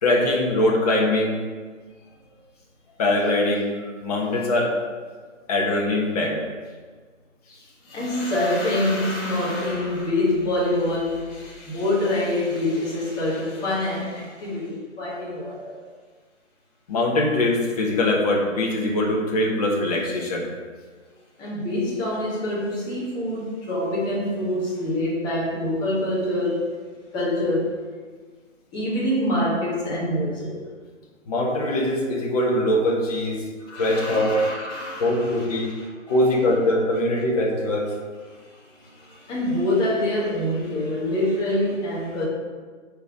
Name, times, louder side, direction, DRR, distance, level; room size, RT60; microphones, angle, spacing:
voice 1, 0.0-1.4 3.0-3.7 4.0-4.7 5.5-6.4 16.9-20.5 31.3-33.4 33.8-34.4 35.0-35.7 36.1-37.9, left 1 dB, 30° left, -1 dB, 1.3 m, -22 dB
voice 2, 7.5-15.8 21.4-26.7 27.1-27.8 28.7-30.6 33.6-35.9 38.3-42.3, left 1 dB, 10° left, -5 dB, 1.4 m, -26 dB
8.3 x 4.5 x 5.1 m, 1.5 s
figure-of-eight pair, 145°, 38 cm